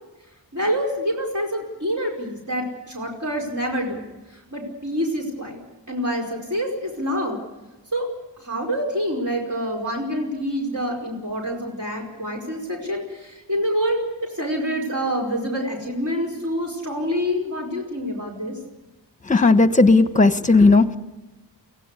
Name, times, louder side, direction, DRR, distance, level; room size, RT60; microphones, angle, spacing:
voice 1, 0.5-4.0 4.3-5.6 5.9-7.4 7.9-8.1 8.4-18.6, equal, 45° right, -2 dB, 5.0 m, -26 dB
voice 2, 19.3-21.0, left 3 dB, 15° left, 10 dB, 1.3 m, -15 dB
23.5 x 16.5 x 8.3 m, 1.1 s
wide cardioid pair, 55°, 43 cm